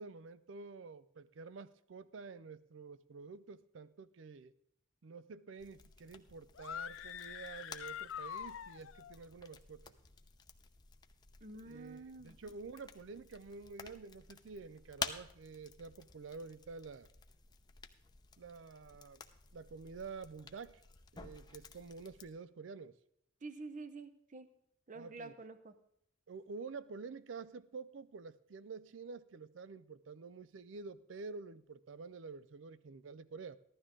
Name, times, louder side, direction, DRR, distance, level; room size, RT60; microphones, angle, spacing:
voice 1, 0.0-4.5 5.0-9.9 11.5-17.1 18.4-19.2 19.5-20.8 21.1-23.0 24.9-25.3 26.3-33.6, right 4 dB, 70° right, 0.5 m, -49 dB
sound 1, 5.6-22.3, left 5 dB, 20° left, 0.6 m, -51 dB
sound 2, 6.5-9.2, left 9 dB, 85° left, 0.4 m, -45 dB
voice 2, 11.4-12.6 23.4-24.5 24.9-25.7, right 3 dB, 40° right, 0.7 m, -48 dB
15.0 x 12.0 x 3.7 m
head